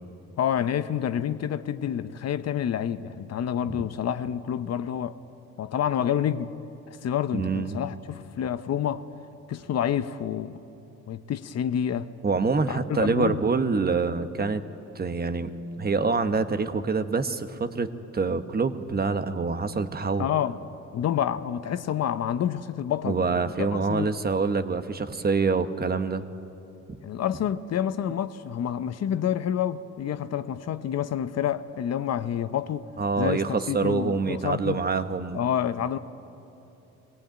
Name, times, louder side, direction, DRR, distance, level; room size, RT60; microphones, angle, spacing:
voice 1, 0.4-5.2 5.6-6.5 7.0-9.1 9.5-10.6 11.1-12.1 12.7-13.4 20.2-20.6 20.9-23.4 23.9-24.1 27.0-32.9 33.2-34.8 35.3-36.0, left 9 dB, 60° left, 0.7 m, -28 dB
voice 2, 7.3-7.8 12.2-14.6 14.9-15.5 15.8-20.3 23.0-26.2 26.9-27.0 33.0-35.4, right 4 dB, 30° right, 1.0 m, -26 dB
20.5 x 17.0 x 8.9 m
cardioid pair, 90°, 30 cm